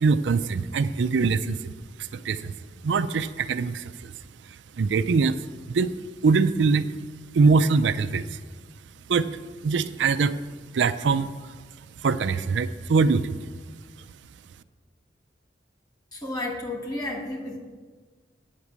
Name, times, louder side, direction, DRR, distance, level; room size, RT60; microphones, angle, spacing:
voice 1, 0.0-1.7 2.0-2.5 2.8-4.1 4.8-5.4 5.7-5.9 6.2-6.9 7.3-8.4 9.1-9.3 9.6-10.4 10.7-11.5 12.0-13.4, right 4 dB, 85° right, 12 dB, 0.4 m, -23 dB
voice 2, 16.1-17.6, left 2 dB, 25° left, 0 dB, 2.0 m, -32 dB
8.6 x 5.9 x 8.0 m, 1.5 s
head